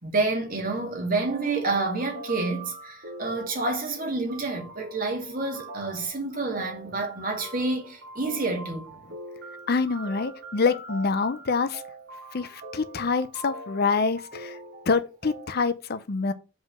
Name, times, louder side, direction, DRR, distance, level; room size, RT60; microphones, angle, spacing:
voice 1, 0.0-8.9, right 3 dB, 45° right, 2.2 m, -28 dB
sound 1, 1.2-15.6, right 2 dB, 60° right, 2.4 m, -43 dB
voice 2, 9.7-11.8 12.3-14.6 14.9-16.3, left 4 dB, 50° left, 0.6 m, -26 dB
5.1 x 4.3 x 6.1 m
head